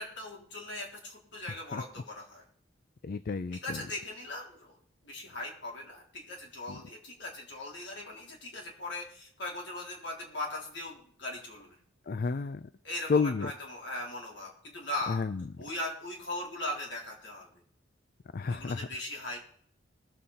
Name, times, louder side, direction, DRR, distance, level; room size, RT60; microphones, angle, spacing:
voice 1, 0.0-2.4 3.5-4.7 5.0-11.8 12.8-15.2 15.6-17.5 18.5-19.4, left 1 dB, 65° left, -2 dB, 3.8 m, -39 dB
voice 2, 3.0-3.8 6.7-6.8 12.1-12.7 13.1-13.5 15.1-15.4 18.3-18.8, left 4 dB, 50° left, 13 dB, 0.4 m, -31 dB
20.5 x 7.7 x 4.2 m, 0.62 s
head